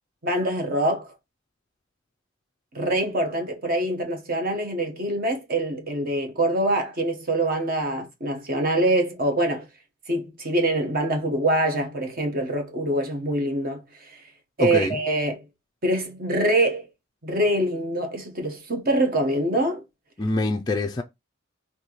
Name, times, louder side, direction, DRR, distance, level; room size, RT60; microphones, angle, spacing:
voice 1, 0.2-1.1 2.7-9.7 10.1-13.8 14.1-14.2 14.6-15.4 15.8-16.9 17.2-19.8, right 1 dB, 45° right, 1.0 m, -24 dB
voice 2, 14.6-14.9 20.2-21.0, left 2 dB, 20° left, 0.3 m, -24 dB
4.3 x 2.7 x 2.9 m
head